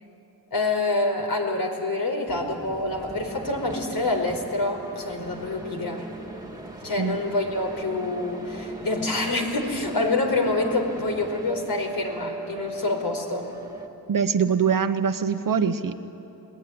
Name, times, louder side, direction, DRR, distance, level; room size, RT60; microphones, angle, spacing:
voice 1, 0.5-6.0 6.8-13.5, left 2 dB, 55° left, 2 dB, 4.9 m, -26 dB
sound 1, 2.3-13.9, right 2 dB, 10° right, 2.5 m, -39 dB
voice 2, 14.1-16.0, right 6 dB, 50° right, 9 dB, 1.2 m, -23 dB
29.5 x 20.5 x 9.8 m, 2.9 s
cardioid pair, 90°, 41 cm